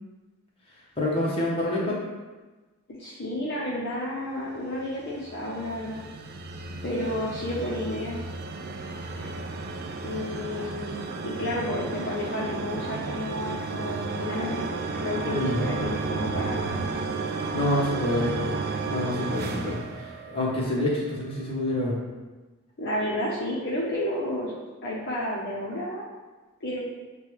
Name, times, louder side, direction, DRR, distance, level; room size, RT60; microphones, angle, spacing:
voice 1, 1.0-1.9 15.3-15.6 17.5-18.3 18.8-22.0, left 1 dB, 25° left, -5 dB, 1.0 m, -27 dB
voice 2, 3.0-6.0 6.8-8.2 10.0-11.0 11.2-16.8 22.8-24.5 24.8-26.0 26.6-26.9, left 1 dB, 50° left, -6 dB, 0.7 m, -31 dB
sound 1, 4.7-20.8, right 3 dB, 45° right, 0.3 m, -33 dB
6.4 x 2.3 x 3.1 m, 1.2 s
head